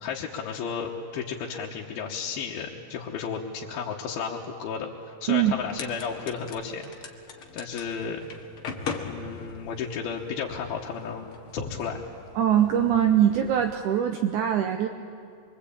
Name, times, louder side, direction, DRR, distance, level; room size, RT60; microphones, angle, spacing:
voice 1, 0.0-4.9 5.2-6.9 7.5-8.2 9.0-12.0, left 6 dB, 85° left, -2 dB, 3.1 m, -33 dB
sound 1, 5.6-13.7, left 4 dB, 45° left, 2.0 m, -40 dB
voice 2, 12.4-14.9, right 10 dB, 75° right, 7 dB, 1.9 m, -22 dB
26.0 x 23.5 x 8.6 m, 2.5 s
omnidirectional pair, 4.2 m